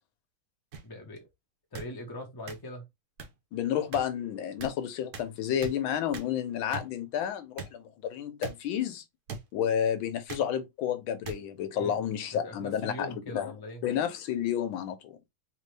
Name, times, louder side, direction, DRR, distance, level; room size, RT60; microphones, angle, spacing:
sound 1, 0.7-0.8 1.7-1.9 2.5-2.6 3.2-3.3 3.9-4.0 4.6-4.7 5.1-5.3 5.6-5.7 6.1-6.3 6.7-6.9 7.6-7.7 8.4-8.5 9.3-9.4 10.3-10.5 11.2-11.4 12.2-12.4, right 5 dB, 60° right, 1.3 m, -39 dB
voice 1, 0.8-1.3 1.7-2.9 11.7-12.0 12.3-13.8, left 1 dB, 15° left, 0.8 m, -41 dB
voice 2, 3.5-9.0 9.5-13.5 13.8-15.2, left 9 dB, 85° left, 1.6 m, -31 dB
4.0 x 3.0 x 3.2 m
omnidirectional pair, 2.1 m